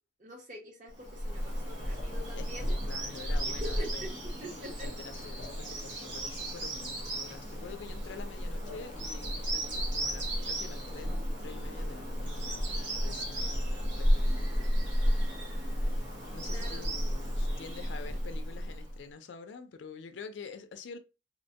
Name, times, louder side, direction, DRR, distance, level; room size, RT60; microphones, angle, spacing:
voice 1, 0.2-2.7 3.5-4.9 16.5-16.9, equal, 45° right, 0.9 m, -45 dB
Bird vocalization bird call bird song, 1.0-19.0, equal, 85° right, 0.9 m, -33 dB
voice 2, 2.3-4.3 4.6-15.4 16.3-21.0, left 5 dB, 90° left, 0.4 m, -47 dB
2.8 x 2.1 x 2.7 m
head